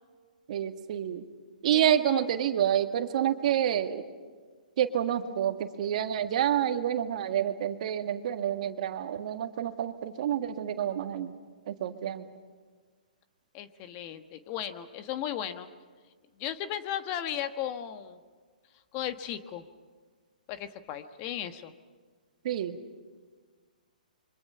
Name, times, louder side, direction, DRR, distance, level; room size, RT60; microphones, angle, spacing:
voice 1, 0.5-1.3 1.6-4.0 4.8-11.3 11.7-12.2 22.4-22.8, right 10 dB, 55° right, 7 dB, 1.8 m, -28 dB
voice 2, 1.7-2.2 13.5-15.7 16.4-18.2 18.9-19.6 20.5-21.7, left 10 dB, 35° left, 10 dB, 1.4 m, -36 dB
29.0 x 24.5 x 5.7 m, 1.5 s
hypercardioid pair, 135°, 5 cm